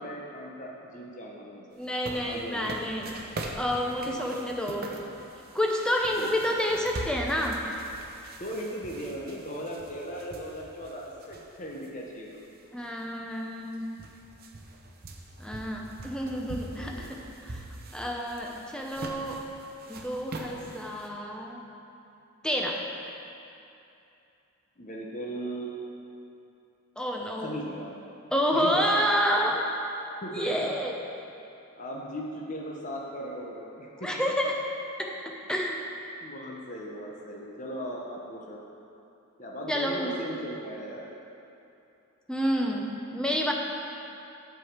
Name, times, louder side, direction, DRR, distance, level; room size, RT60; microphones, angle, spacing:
voice 1, 0.0-1.6 2.2-2.9 4.0-4.3 6.2-6.3 8.4-12.6 16.8-17.2 24.8-25.8 27.4-28.0 28.5-29.1 30.2-30.7 31.8-34.1 36.2-38.6 39.4-41.1, equal, 35° left, -2 dB, 0.8 m, -38 dB
voice 2, 1.8-3.1 3.5-5.0 5.5-7.7 12.7-13.9 15.4-17.6 17.9-19.4 19.9-21.6 22.4-22.8 27.0-27.5 28.3-29.7 30.3-31.0 34.0-34.7 35.0-35.9 39.7-40.1 42.3-43.5, equal, 5° left, 0 dB, 0.6 m, -29 dB
sound 1, 1.8-11.9 12.3-12.4 13.3-13.4 13.6-21.1, right 2 dB, 40° right, 0.7 m, -42 dB
8.3 x 4.9 x 7.4 m, 2.8 s
head